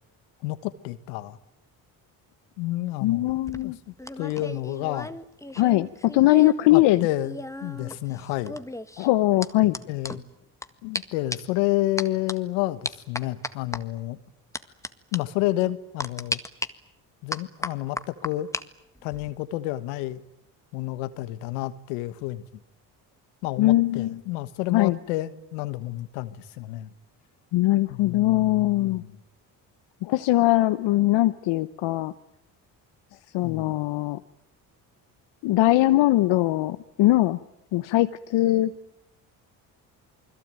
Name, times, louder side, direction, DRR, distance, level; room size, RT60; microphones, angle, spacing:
voice 1, 0.4-1.4 2.6-3.3 3.6-5.1 6.7-8.5 9.9-10.2 10.8-14.2 15.1-16.4 17.2-18.5 19.0-20.2 20.7-22.4 23.4-26.9 27.9-29.2 33.4-33.7, left 16 dB, 85° left, 13 dB, 1.5 m, -30 dB
voice 2, 3.0-3.8 5.6-7.1 9.0-9.8 23.6-24.1 24.7-25.0 27.5-29.0 30.0-32.1 33.3-34.2 35.4-37.4 37.7-38.7, left 16 dB, 70° left, 11 dB, 1.1 m, -21 dB
sound 1, 3.3-6.7 6.9-10.7 10.9-11.0 11.3-11.6 12.0-12.3 12.8-13.8 14.5-14.9 15.1-15.2 16.0-16.7 17.3-18.6 19.0-19.3, left 1 dB, 5° left, 1.7 m, -35 dB
28.5 x 21.5 x 9.1 m, 0.80 s
hypercardioid pair, 60°, 46 cm